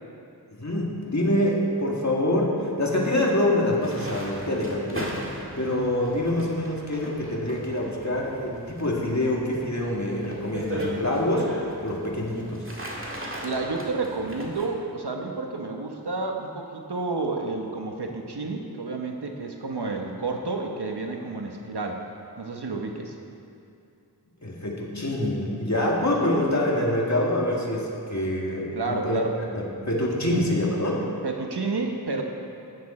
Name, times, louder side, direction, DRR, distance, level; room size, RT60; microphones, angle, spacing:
voice 1, 0.5-5.2 5.6-12.6 24.4-29.2 29.5-31.0, left 1 dB, 45° left, -2 dB, 2.0 m, -25 dB
sound 1, 3.8-14.7, equal, 30° right, 1.9 m, -38 dB
voice 2, 13.4-22.0 22.4-23.2 25.8-25.9 28.7-29.3 31.2-32.2, right 3 dB, 85° right, 2 dB, 1.2 m, -30 dB
13.0 x 9.6 x 4.3 m, 2.6 s
wide cardioid pair, 50°, 39 cm